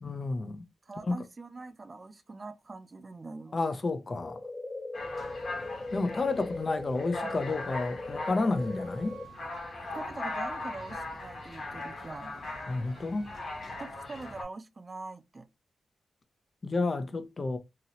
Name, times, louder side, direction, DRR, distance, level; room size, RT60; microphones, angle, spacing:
voice 1, 0.0-0.6 1.1-1.2 3.5-4.4 5.9-9.2 12.7-13.3 16.6-17.6, left 3 dB, 40° left, 0.5 m, -31 dB
voice 2, 0.8-3.6 9.9-12.5 13.8-15.5, right 3 dB, 35° right, 0.4 m, -43 dB
sound 1, 4.2-9.2, left 2 dB, 20° left, 1.3 m, -39 dB
sound 2, 4.9-14.4, left 2 dB, 55° left, 1.1 m, -40 dB
Wind instrument woodwind instrument, 6.6-13.4, right 5 dB, 85° right, 0.7 m, -57 dB
2.8 x 2.8 x 2.7 m
cardioid pair, 90°, 0 cm